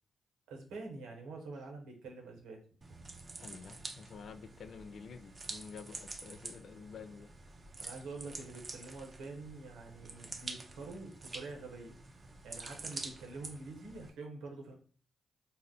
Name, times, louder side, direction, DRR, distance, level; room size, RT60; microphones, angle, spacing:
voice 1, 0.5-2.6 7.8-11.9 12.4-14.7, right 3 dB, 80° right, 0.9 m, -46 dB
sound 1, 2.8-14.1, right 3 dB, 45° right, 0.6 m, -47 dB
voice 2, 3.4-7.3, left 5 dB, 65° left, 0.4 m, -49 dB
4.2 x 2.0 x 3.8 m
hypercardioid pair, 45°, 0 cm